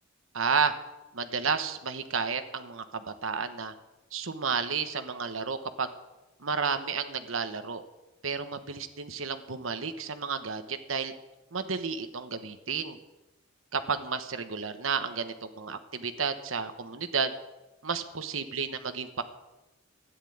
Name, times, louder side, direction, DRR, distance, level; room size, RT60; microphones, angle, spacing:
voice 1, 0.3-0.7 1.1-3.7 4.1-5.9 6.4-7.8 8.2-11.1 11.5-13.0 13.7-17.3 17.8-19.2, right 5 dB, 90° right, 9 dB, 1.3 m, -31 dB
13.0 x 10.0 x 8.7 m, 1.0 s
head